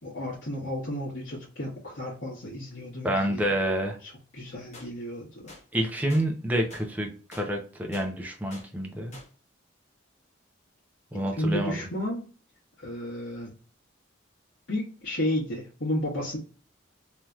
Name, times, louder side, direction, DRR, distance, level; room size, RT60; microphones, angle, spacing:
voice 1, 0.0-3.5 4.0-5.4 11.3-12.2 12.8-13.5 14.7-16.4, left 1 dB, 75° left, -10 dB, 1.4 m, -32 dB
voice 2, 3.0-4.0 5.7-9.2 11.1-11.8, equal, 10° right, 1 dB, 0.6 m, -28 dB
sound 1, 4.7-4.9 5.5-5.6 6.1-6.3 6.7-6.9 7.3-7.5 7.9-8.1 8.5-8.7 9.1-9.3, left 2 dB, 35° left, 1.1 m, -46 dB
3.2 x 2.9 x 2.3 m, 0.40 s
head